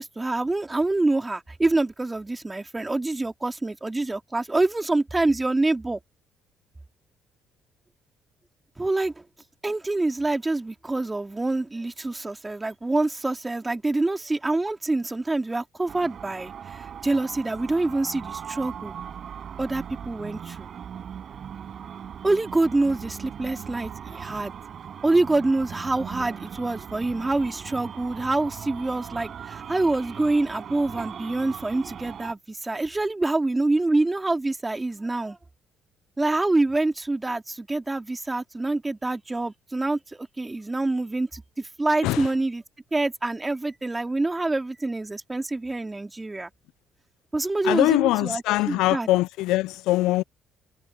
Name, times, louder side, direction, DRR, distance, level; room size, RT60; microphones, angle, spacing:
voice 1, 0.0-6.0 8.8-9.2 9.6-18.9 19.6-20.7 22.2-24.5 25.0-35.4 36.2-42.6 42.9-46.5 47.3-48.4 48.7-49.1, right 2 dB, 20° right, 3.5 m, -26 dB
sound 1, 15.9-32.3, right 8 dB, 55° right, 6.5 m, -39 dB
voice 2, 47.6-50.2, left 17 dB, 70° left, 0.8 m, -22 dB
hypercardioid pair, 50°, 0 cm